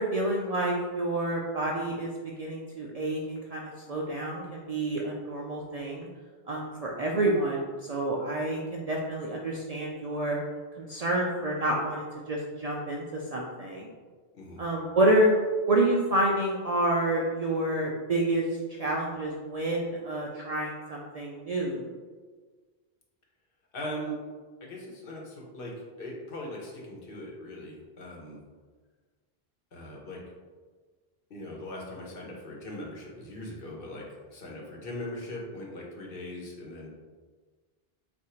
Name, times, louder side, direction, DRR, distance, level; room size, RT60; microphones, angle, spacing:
voice 1, 0.0-6.1 6.5-10.4 10.8-13.9 14.6-15.3 15.7-21.8, right 1 dB, 55° right, -3 dB, 0.4 m, -28 dB
voice 2, 23.7-24.2 24.6-28.4 29.7-30.2 31.3-36.9, left 1 dB, 60° left, -2 dB, 1.0 m, -40 dB
3.7 x 2.5 x 4.3 m, 1.4 s
omnidirectional pair, 1.1 m